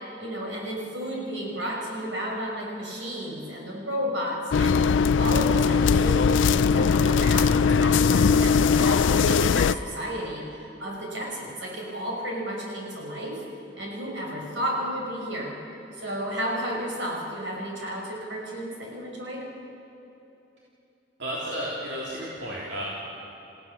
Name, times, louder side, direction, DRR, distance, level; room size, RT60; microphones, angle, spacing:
voice 1, 0.2-10.4 10.8-13.4 13.8-15.5 15.9-19.4, equal, 85° right, -2 dB, 5.7 m, -32 dB
sound 1, 4.5-9.7, left 5 dB, 90° left, 0.4 m, -20 dB
voice 2, 21.2-22.8, equal, 65° right, -6 dB, 3.5 m, -32 dB
28.5 x 16.0 x 7.0 m, 2.9 s
head